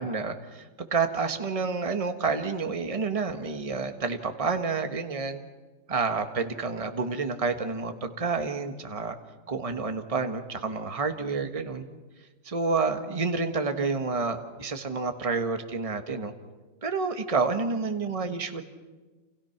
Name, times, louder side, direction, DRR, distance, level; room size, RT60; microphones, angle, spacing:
voice 1, 0.0-5.4 5.9-9.1 9.5-11.9 12.4-16.3 16.8-18.6, right 4 dB, 20° right, 7 dB, 1.5 m, -29 dB
29.0 x 29.0 x 6.0 m, 1.3 s
omnidirectional pair, 2.1 m